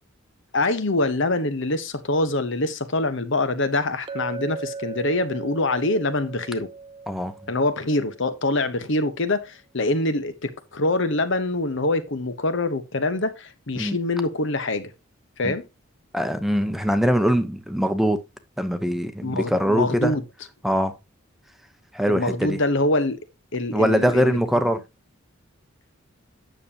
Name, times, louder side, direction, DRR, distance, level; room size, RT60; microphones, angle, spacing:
voice 1, 0.5-6.7 7.5-14.9 15.4-15.7 19.2-20.2 22.1-23.2 23.5-24.4, left 2 dB, 65° left, 1.2 m, -24 dB
Chink clink, 4.1-8.2, right 4 dB, 25° right, 0.5 m, -38 dB
voice 2, 16.1-18.2 18.6-20.1 20.6-20.9 21.9-22.6 23.7-24.8, equal, ahead, 0.9 m, -22 dB
9.4 x 7.1 x 2.9 m
head